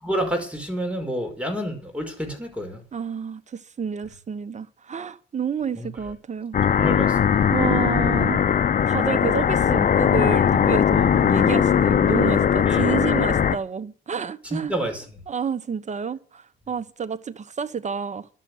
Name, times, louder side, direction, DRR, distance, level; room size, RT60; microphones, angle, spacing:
voice 1, 0.0-2.8 5.8-5.9 6.7-7.5 12.7-12.9 14.4-15.2, equal, 5° right, 5.2 m, -29 dB
voice 2, 2.9-6.6 7.5-8.4 8.9-14.7 15.3-18.3, right 6 dB, 35° right, 1.1 m, -29 dB
sound 1, 6.5-13.6, left 8 dB, 45° left, 0.8 m, -19 dB
12.0 x 7.4 x 9.3 m
cardioid pair, 90°, 20 cm